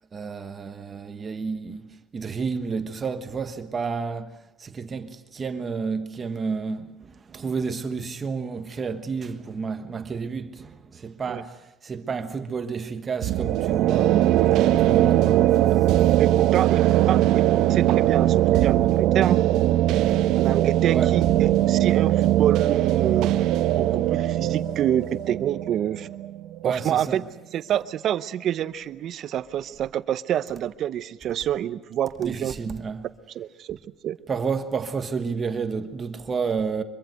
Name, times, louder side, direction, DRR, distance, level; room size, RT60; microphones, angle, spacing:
voice 1, 0.1-15.9 20.9-21.1 26.6-27.2 32.2-33.1 34.3-36.8, right 5 dB, 25° right, 1.3 m, -31 dB
sound 1, 13.2-26.9, right 13 dB, 65° right, 1.1 m, -20 dB
voice 2, 16.2-19.4 20.3-23.3 23.7-26.1 26.6-27.2 27.5-32.5 33.3-33.8 34.0-34.2, right 10 dB, 45° right, 0.8 m, -27 dB
24.5 x 23.5 x 7.8 m
cardioid pair, 170°, 0 cm